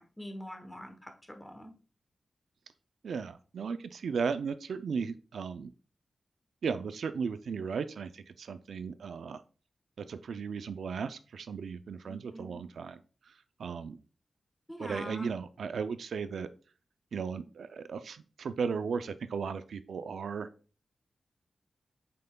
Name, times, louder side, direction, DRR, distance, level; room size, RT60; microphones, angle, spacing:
voice 1, 0.0-1.7 12.0-12.6 14.7-15.3, equal, 10° left, 5 dB, 0.9 m, -44 dB
voice 2, 3.0-5.7 6.6-9.4 10.1-13.0 13.3-13.4 13.6-14.0 14.8-16.5 17.1-20.5, right 5 dB, 90° right, 12 dB, 0.4 m, -36 dB
7.5 x 5.5 x 2.2 m, 0.37 s
wide cardioid pair, 175°, 0 cm